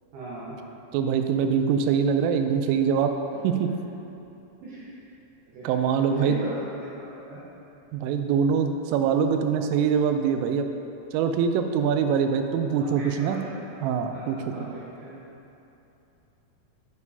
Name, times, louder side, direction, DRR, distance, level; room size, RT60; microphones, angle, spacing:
voice 1, 0.1-0.6 4.6-4.9 5.5-6.9 7.3-7.4 12.8-13.5 14.1-15.1, right 2 dB, 70° right, -9 dB, 2.6 m, -37 dB
voice 2, 0.9-3.1 3.4-3.7 5.6-6.4 7.9-10.7 11.1-13.4 13.8-14.7, right 7 dB, 90° right, 6 dB, 3.1 m, -24 dB
9.4 x 7.0 x 2.7 m, 2.9 s
omnidirectional pair, 5.6 m